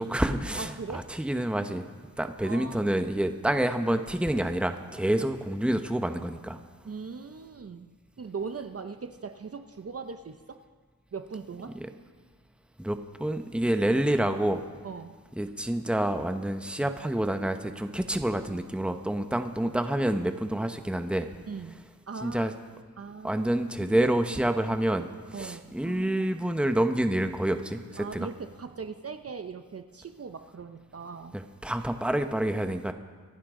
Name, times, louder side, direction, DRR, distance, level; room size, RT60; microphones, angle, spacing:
voice 1, 0.0-1.9 2.2-6.6 12.8-14.6 15.4-21.3 22.2-22.5 23.2-28.3 31.3-32.9, right 1 dB, 5° right, 7 dB, 1.0 m, -28 dB
voice 2, 0.6-1.1 2.4-2.9 6.8-7.9 8.2-10.6 11.1-11.8 14.8-15.2 21.5-22.5 23.0-23.4 25.3-26.5 28.0-31.4, right 5 dB, 45° right, 8 dB, 0.8 m, -40 dB
25.0 x 11.5 x 3.8 m, 1.5 s
cardioid pair, 55°, 34 cm